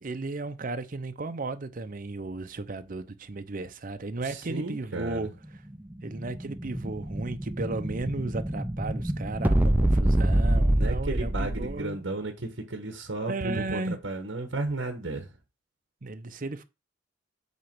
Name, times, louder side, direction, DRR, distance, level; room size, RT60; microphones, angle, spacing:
voice 1, 0.0-5.6 6.0-12.1 13.3-14.0 16.0-16.6, right 3 dB, 45° right, 0.7 m, -35 dB
voice 2, 4.2-5.3 10.7-15.3, right 2 dB, 70° right, 1.2 m, -34 dB
Explosion, 5.7-11.8, right 1 dB, 10° right, 0.4 m, -26 dB
8.2 x 3.0 x 6.0 m
head